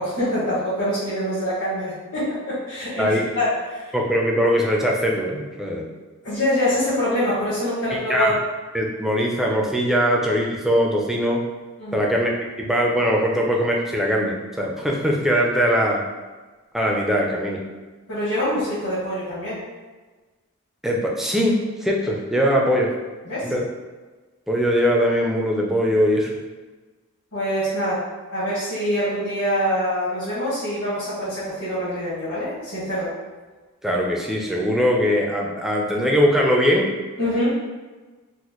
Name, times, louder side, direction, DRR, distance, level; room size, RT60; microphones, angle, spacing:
voice 1, 0.0-3.9 6.2-8.3 11.8-12.1 18.1-19.6 23.2-23.5 27.3-28.0 28.3-33.1 37.2-37.5, equal, 65° left, -12 dB, 1.4 m, -25 dB
voice 2, 3.9-5.9 7.9-8.3 8.7-11.4 11.9-12.3 12.6-16.0 16.7-17.6 20.8-22.9 23.4-23.6 24.5-26.3 33.8-36.9, equal, ahead, -2 dB, 0.4 m, -21 dB
4.0 x 2.1 x 3.0 m, 1.3 s
head